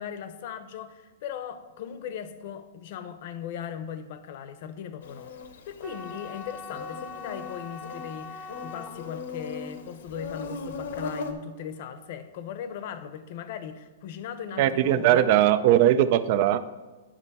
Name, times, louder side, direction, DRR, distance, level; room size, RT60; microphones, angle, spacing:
voice 1, 0.0-5.3 5.7-15.4, left 8 dB, 50° left, 11 dB, 0.8 m, -38 dB
Insect, 5.0-11.3, left 4 dB, 75° left, 1.0 m, -39 dB
sound 1, 5.8-12.0, left 4 dB, 10° right, 0.8 m, -43 dB
voice 2, 14.6-16.7, right 12 dB, 45° right, 14 dB, 0.4 m, -20 dB
9.9 x 6.3 x 4.1 m, 1.2 s
hypercardioid pair, 155°, 0 cm